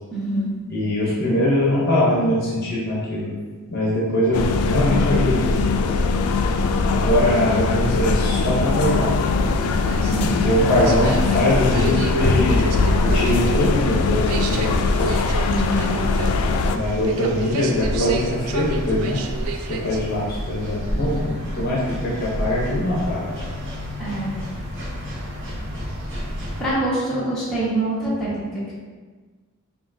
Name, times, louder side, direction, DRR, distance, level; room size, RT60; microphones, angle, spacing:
voice 1, 0.1-0.5 10.0-10.4 15.5-15.9 24.0-24.4 26.6-28.7, right 1 dB, 5° left, -11 dB, 1.2 m, -25 dB
voice 2, 0.7-3.3 3.7-5.5 6.9-9.1 10.4-12.6 13.0-15.2 16.7-19.2 19.7-23.4, left 1 dB, 45° left, -6 dB, 0.8 m, -22 dB
sound 1, 4.3-16.8, left 3 dB, 80° left, 0.3 m, -21 dB
sound 2, 9.6-20.2, right 5 dB, 75° right, 0.3 m, -34 dB
sound 3, 14.0-26.7, equal, 55° right, 0.8 m, -31 dB
5.5 x 2.3 x 2.6 m, 1.4 s
head